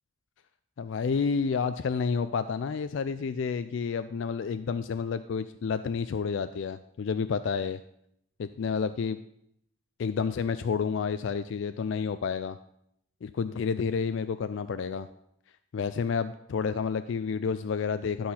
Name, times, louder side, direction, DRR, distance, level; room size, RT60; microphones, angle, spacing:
voice 1, 0.8-7.8 8.4-9.2 10.0-12.6 13.2-15.1 15.7-18.3, left 5 dB, 65° left, 12 dB, 0.3 m, -30 dB
11.5 x 4.3 x 5.6 m, 0.73 s
head